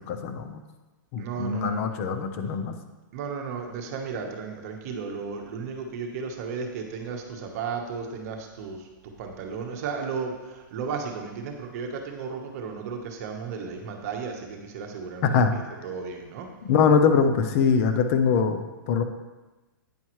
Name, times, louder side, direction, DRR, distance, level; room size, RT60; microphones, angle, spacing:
voice 1, 0.1-0.6 1.1-2.7 15.2-15.5 16.6-19.0, left 6 dB, 40° left, 8 dB, 0.5 m, -23 dB
voice 2, 1.2-1.9 3.1-8.8 9.2-16.5, right 5 dB, 45° right, 3 dB, 1.1 m, -34 dB
8.8 x 5.5 x 3.1 m, 1.2 s
hypercardioid pair, 150°, 11 cm